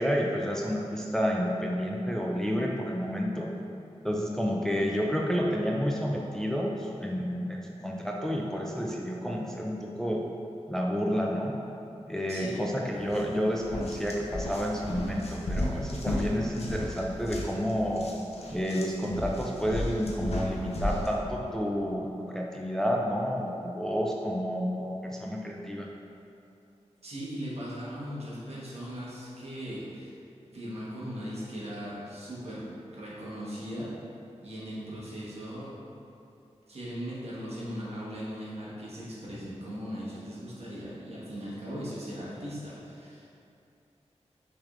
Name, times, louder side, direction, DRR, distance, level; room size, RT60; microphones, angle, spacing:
voice 1, 0.0-3.5 4.0-10.3 10.7-11.6 12.1-18.1 18.5-25.9, equal, 5° left, -1 dB, 0.3 m, -30 dB
voice 2, 12.3-12.6 27.0-30.2 30.5-32.7 32.9-33.9 34.4-35.7 36.7-43.2, equal, 65° right, -7 dB, 1.2 m, -38 dB
sound 1, 13.0-13.2 13.6-21.1, left 1 dB, 65° left, 0.6 m, -34 dB
6.0 x 3.3 x 2.5 m, 2.7 s
wide cardioid pair, 85°, 11 cm